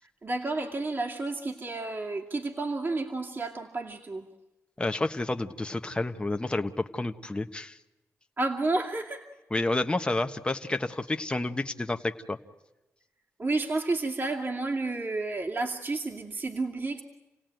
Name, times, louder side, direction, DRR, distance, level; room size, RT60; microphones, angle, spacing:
voice 1, 0.0-4.3 8.4-9.3 13.4-17.0, right 3 dB, 40° right, 0 dB, 2.4 m, -31 dB
voice 2, 4.8-7.8 9.5-12.4, left 2 dB, 20° left, 7 dB, 1.2 m, -30 dB
28.5 x 17.5 x 9.2 m, 1.0 s
cardioid pair, 70°, 6 cm